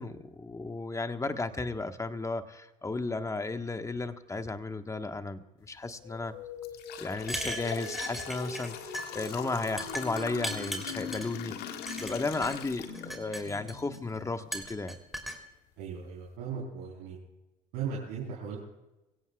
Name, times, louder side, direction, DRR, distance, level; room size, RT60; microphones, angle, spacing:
voice 1, 0.0-6.4 7.0-15.0, left 3 dB, 15° left, 8 dB, 1.4 m, -34 dB
sound 1, 5.7-5.9 6.4-13.5 13.9-14.0 14.9-15.0 15.5-15.6 16.0-16.3, left 9 dB, 60° left, 1.8 m, -43 dB
sound 2, 6.0-14.9, left 4 dB, 80° left, 3.3 m, -44 dB
sound 3, 7.2-8.7 8.9-9.3 9.8-11.3 11.9-12.5 12.9-14.0 14.5-15.4, equal, ahead, 3.3 m, -38 dB
voice 2, 15.8-17.2 17.7-18.6, right 6 dB, 70° right, -4 dB, 4.1 m, -37 dB
23.5 x 17.0 x 2.4 m, 0.98 s
hypercardioid pair, 65°, 18 cm